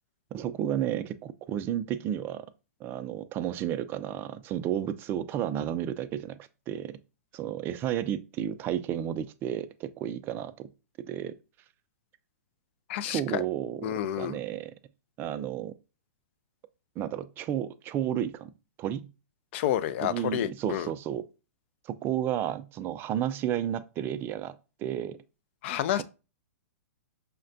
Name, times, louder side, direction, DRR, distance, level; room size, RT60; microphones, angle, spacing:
voice 1, 0.3-2.5 2.8-6.4 6.7-7.0 7.3-10.7 11.1-11.4 13.1-14.7 15.2-15.7 17.0-18.5 18.8-19.1 20.0-21.2 21.9-25.2, right 10 dB, 25° right, 0.3 m, -32 dB
voice 2, 12.9-13.4 13.8-14.4 19.5-20.9 25.6-26.0, left 11 dB, 50° left, 0.4 m, -29 dB
5.6 x 2.1 x 2.5 m
hypercardioid pair, 120°, 8 cm